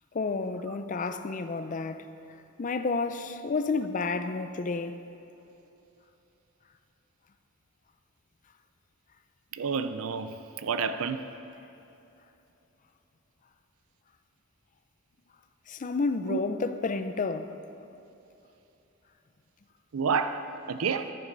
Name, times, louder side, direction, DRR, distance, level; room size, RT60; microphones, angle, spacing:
voice 1, 0.1-2.1 2.6-5.0 15.7-17.6, left 4 dB, 40° left, 0.5 m, -30 dB
voice 2, 9.5-11.2 16.3-16.4 19.9-21.1, right 5 dB, 80° right, 0.5 m, -30 dB
14.0 x 10.5 x 4.0 m
head